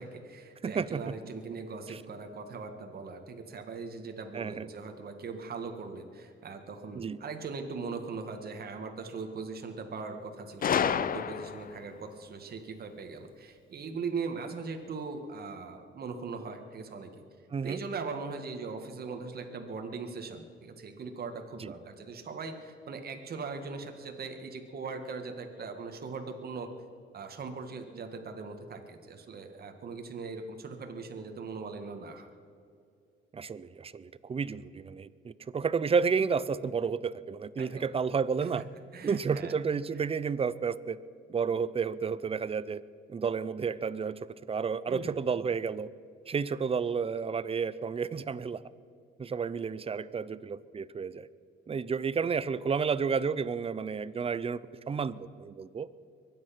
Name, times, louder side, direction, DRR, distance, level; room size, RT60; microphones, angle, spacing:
voice 1, 0.0-17.1 17.6-26.7 27.1-32.3 37.6-37.9 38.9-39.5 44.9-45.2, right 4 dB, 50° right, 5 dB, 1.8 m, -40 dB
voice 2, 0.6-1.1 1.9-2.0 4.3-4.7 6.9-7.2 17.5-17.8 21.6-21.7 33.3-38.6 39.0-41.0 41.3-42.8 43.1-45.9 46.3-48.6 49.2-51.3 51.7-54.6 54.9-55.9, right 6 dB, 30° right, 17 dB, 0.6 m, -31 dB
Gunshot gunfire, 10.6-11.8, left 8 dB, 45° left, 0.6 m, -29 dB
23.5 x 9.4 x 5.9 m, 2.3 s
cardioid pair, 90°, 20 cm